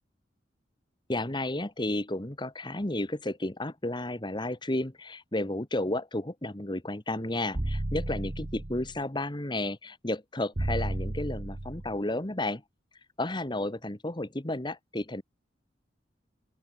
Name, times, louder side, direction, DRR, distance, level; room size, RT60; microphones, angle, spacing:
voice 1, 1.1-12.6 13.2-15.2, left 1 dB, 25° left, 1.5 m, -32 dB
sound 1, 7.5-9.0 10.6-12.0, right 1 dB, 35° right, 0.9 m, -33 dB
open air
head